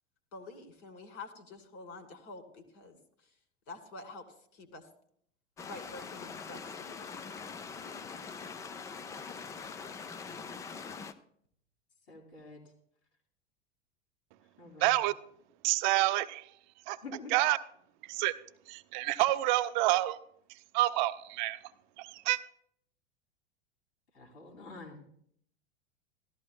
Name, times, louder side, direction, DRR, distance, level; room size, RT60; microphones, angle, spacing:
voice 1, 0.3-3.0 3.7-4.2 4.5-4.9 5.6-7.1, left 3 dB, 40° left, 7 dB, 2.0 m, -47 dB
sound 1, 5.6-11.1, left 5 dB, 10° left, 0.3 m, -43 dB
voice 2, 12.1-12.6 14.6-15.0 17.0-17.4 24.1-25.1, left 3 dB, 70° left, -5 dB, 2.7 m, -47 dB
voice 3, 14.8-15.1 15.6-16.4 16.9-17.0 17.3-17.6 18.1-18.3 18.7-20.2 20.7-21.6 22.0-22.4, right 17 dB, 40° right, 14 dB, 0.6 m, -28 dB
17.5 x 13.5 x 2.2 m, 0.66 s
figure-of-eight pair, 85°, 35 cm